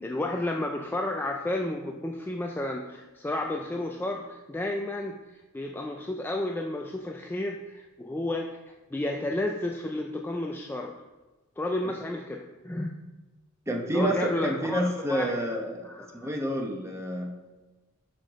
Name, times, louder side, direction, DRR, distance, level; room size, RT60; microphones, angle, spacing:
voice 1, 0.0-10.9 11.6-12.9 13.9-15.3 15.8-16.3, left 1 dB, 10° left, 1 dB, 0.3 m, -32 dB
voice 2, 13.7-15.9 16.1-17.3, right 1 dB, 15° right, 2 dB, 0.8 m, -29 dB
5.6 x 5.2 x 5.0 m, 1.2 s
head